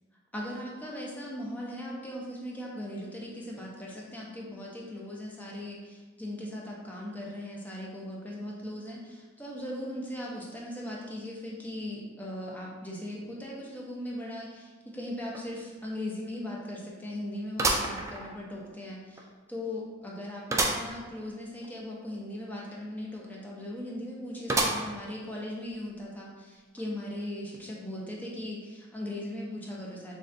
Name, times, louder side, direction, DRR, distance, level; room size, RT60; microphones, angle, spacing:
voice 1, 0.3-30.2, left 1 dB, 10° left, -4 dB, 0.7 m, -39 dB
sound 1, 15.3-15.4 15.9-16.0 17.6-18.7 19.2-19.3 20.5-20.9 21.3-21.4 21.6-21.7 24.5-25.1 25.7-25.8 26.8-26.9, right 2 dB, 15° right, 0.3 m, -28 dB
6.3 x 2.4 x 2.6 m, 1.3 s
head